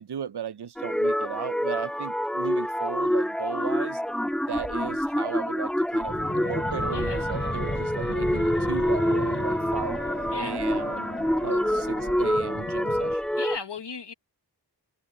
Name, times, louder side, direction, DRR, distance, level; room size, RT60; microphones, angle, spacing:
voice 1, 0.0-4.0 4.5-10.0 10.4-11.1 11.4-13.4, right 8 dB, 75° right, 0.7 m, -36 dB
sound 1, 0.8-13.6, equal, ahead, 0.3 m, -27 dB
Dog, 4.5-5.1 5.7-5.8 6.0-13.3, right 2 dB, 35° right, 4.1 m, -42 dB
Fixed-wing aircraft airplane, 6.1-13.1, left 2 dB, 30° left, 4.4 m, -35 dB
voice 2, 6.9-7.3 10.3-10.6 11.5-11.6 13.4-14.1, left 5 dB, 80° left, 1.7 m, -37 dB
wide cardioid pair, 45°, 41 cm